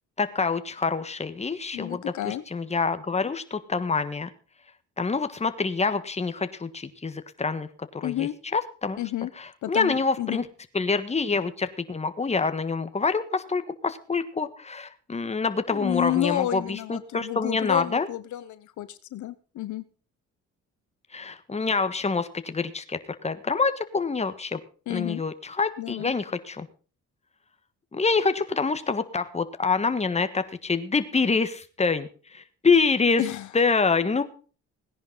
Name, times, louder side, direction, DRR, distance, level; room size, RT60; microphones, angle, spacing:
voice 1, 0.2-4.3 5.0-9.0 9.4-10.4 10.7-18.1 21.1-24.6 24.9-26.7 27.9-33.2 33.5-34.2, left 4 dB, 20° left, 10 dB, 1.5 m, -26 dB
voice 2, 1.7-2.4 8.0-8.3 9.0-9.3 9.6-10.4 15.7-19.8 24.9-25.2 25.8-26.1 33.2-33.5, left 13 dB, 75° left, 13 dB, 1.0 m, -30 dB
17.5 x 10.5 x 3.9 m, 0.37 s
cardioid pair, 90°, 30 cm